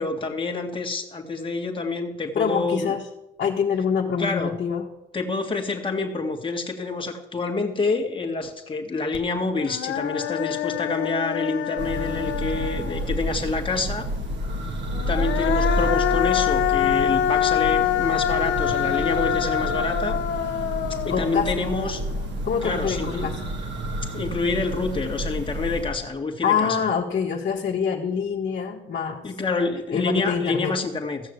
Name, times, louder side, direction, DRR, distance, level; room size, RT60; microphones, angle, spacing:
voice 1, 0.0-2.9 4.2-4.5 5.1-14.1 15.1-20.2 20.9-22.1 22.6-23.3 24.1-26.9 29.2-31.2, left 3 dB, 25° left, 2 dB, 2.0 m, -27 dB
voice 2, 2.3-3.0 3.4-4.8 21.1-21.5 22.4-23.3 26.4-29.3 29.9-30.7, left 6 dB, 55° left, -2 dB, 1.6 m, -25 dB
Human voice, 9.1-9.2 9.6-13.3 14.9-22.2, left 11 dB, 75° left, 1.0 m, -25 dB
Church bell, 11.8-26.1, right 1 dB, 65° right, 2.6 m, -30 dB
15.0 x 6.6 x 8.1 m, 0.92 s
cardioid pair, 90°, 20 cm